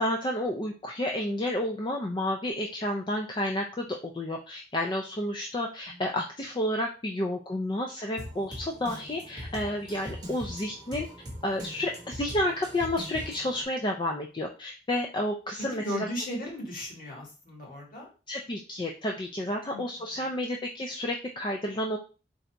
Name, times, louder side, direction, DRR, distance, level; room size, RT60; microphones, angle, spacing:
voice 1, 0.0-11.1 11.4-16.1 18.3-22.0, left 1 dB, 25° left, 2 dB, 0.4 m, -31 dB
Drum kit, 8.2-13.6, equal, 20° right, 0.9 m, -41 dB
voice 2, 15.7-18.1 19.7-20.2, equal, 50° left, -1 dB, 1.6 m, -36 dB
4.0 x 2.5 x 4.4 m, 0.34 s
head